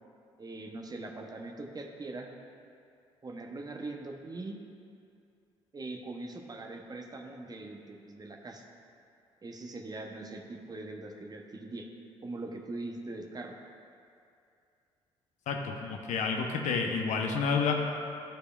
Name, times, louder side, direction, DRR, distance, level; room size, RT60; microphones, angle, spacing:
voice 1, 0.4-2.3 3.2-4.6 5.7-8.6 9.4-11.9 12.2-13.5, right 2 dB, 25° right, 2 dB, 0.8 m, -41 dB
voice 2, 15.5-17.8, left 5 dB, 55° left, 2 dB, 0.8 m, -29 dB
13.5 x 4.8 x 2.4 m, 2.5 s
hypercardioid pair, 50°, 15 cm